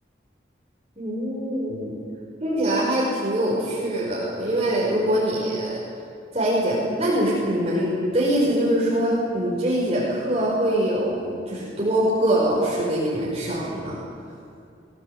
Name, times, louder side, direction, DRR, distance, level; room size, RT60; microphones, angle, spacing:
voice 1, 1.0-2.0 2.4-5.8 6.3-14.0, right 1 dB, 35° right, -6 dB, 5.5 m, -23 dB
22.5 x 21.0 x 8.5 m, 2.5 s
head